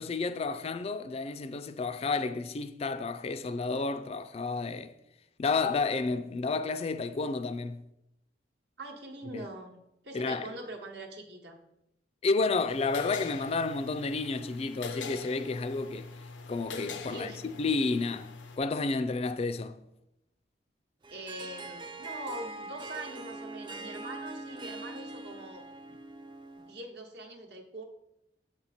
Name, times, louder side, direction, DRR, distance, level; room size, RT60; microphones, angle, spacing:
voice 1, 0.0-4.9 5.4-7.8 9.3-9.5 10.1-10.5 12.2-16.1 16.5-19.8, left 3 dB, 35° left, 0.3 m, -31 dB
voice 2, 8.8-9.8 10.0-11.6 17.1-17.4 21.1-25.7 26.6-27.9, right 1 dB, 65° right, 1.0 m, -43 dB
sound 1, 12.7-18.6, left 4 dB, 90° left, 0.6 m, -42 dB
Harp, 21.0-26.8, right 2 dB, 25° right, 0.4 m, -42 dB
7.1 x 4.4 x 4.1 m
head